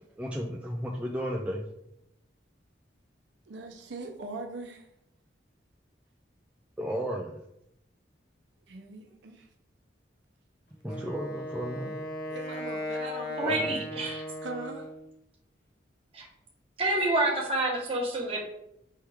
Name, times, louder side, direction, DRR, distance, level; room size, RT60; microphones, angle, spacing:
voice 1, 0.2-1.6 6.8-7.4 10.8-12.0 13.4-13.7, equal, 5° right, -2 dB, 0.3 m, -33 dB
voice 2, 3.5-4.9 8.7-9.5 12.2-13.7 14.4-14.9, right 2 dB, 70° right, 3 dB, 0.6 m, -41 dB
Wind instrument woodwind instrument, 10.8-15.1, left 1 dB, 50° left, 0.8 m, -37 dB
voice 3, 13.4-14.2 16.1-16.3 16.8-18.4, right 1 dB, 30° right, -2 dB, 1.0 m, -28 dB
4.5 x 3.2 x 3.4 m, 0.78 s
head